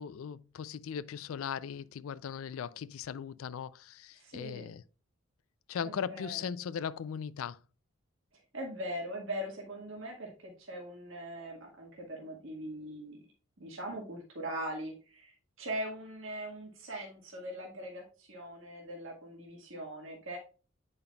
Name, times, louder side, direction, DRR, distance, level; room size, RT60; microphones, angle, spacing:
voice 1, 0.0-4.8 5.7-7.6, left 7 dB, 90° left, 0.4 m, -38 dB
voice 2, 4.2-4.7 5.8-6.4 8.5-13.2 13.6-20.4, right 1 dB, 70° right, 1.7 m, -41 dB
8.7 x 5.4 x 2.3 m
head